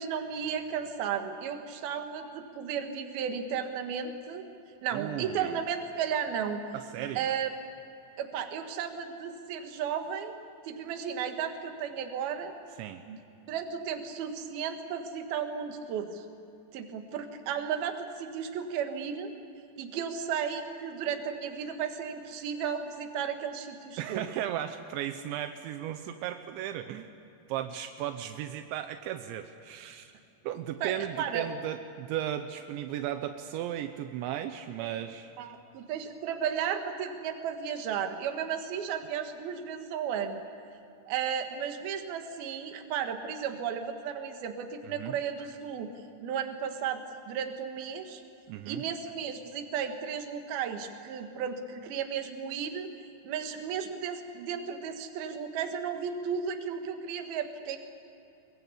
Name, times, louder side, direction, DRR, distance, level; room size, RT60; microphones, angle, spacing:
voice 1, 0.0-4.4 4.8-6.6 7.2-7.5 8.2-10.4 10.7-12.5 13.1-13.2 13.5-16.2 16.7-19.3 19.8-24.2 30.8-31.5 34.8-34.9 35.4-40.4 41.1-45.9 46.2-48.2 48.7-52.9 53.2-57.8, right 7 dB, 65° right, 5 dB, 3.2 m, -34 dB
voice 2, 4.9-5.6 6.7-7.3 12.8-13.0 24.0-27.1 27.5-30.1 30.4-35.3 44.8-45.2 48.5-48.8, right 11 dB, 85° right, 8 dB, 3.1 m, -35 dB
24.0 x 22.0 x 8.5 m, 2.8 s
omnidirectional pair, 5.2 m